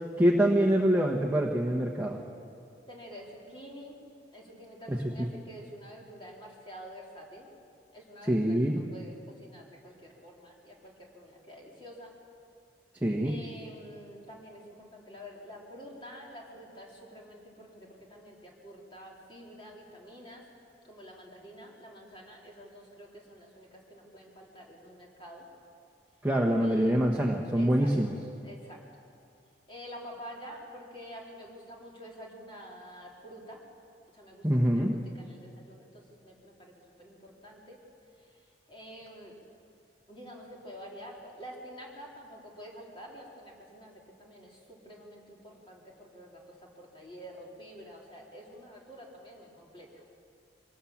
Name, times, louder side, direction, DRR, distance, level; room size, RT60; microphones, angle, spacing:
voice 1, 0.2-2.2 4.9-5.3 8.3-8.8 13.0-13.3 26.2-28.1 34.4-34.9, equal, 10° right, 0 dB, 1.2 m, -25 dB
voice 2, 2.9-4.0 4.3-7.5 7.9-12.1 13.2-20.5 20.8-25.5 26.6-27.1 27.5-27.9 28.4-28.8 29.7-33.6 34.1-37.8 38.2-38.4 38.7-39.4 40.1-50.0, equal, 30° left, -2 dB, 3.5 m, -48 dB
23.5 x 19.0 x 7.3 m, 2.4 s
head